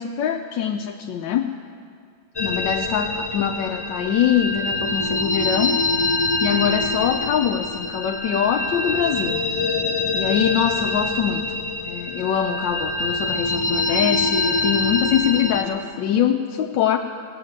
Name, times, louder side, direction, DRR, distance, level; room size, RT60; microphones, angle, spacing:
voice 1, 0.0-1.5 2.4-5.7 6.4-9.4 10.1-17.0, left 9 dB, 85° left, 2 dB, 1.3 m, -23 dB
sound 1, 2.4-15.6, left 2 dB, 30° left, 0.4 m, -25 dB
18.0 x 9.5 x 7.7 m, 2.3 s
omnidirectional pair, 2.0 m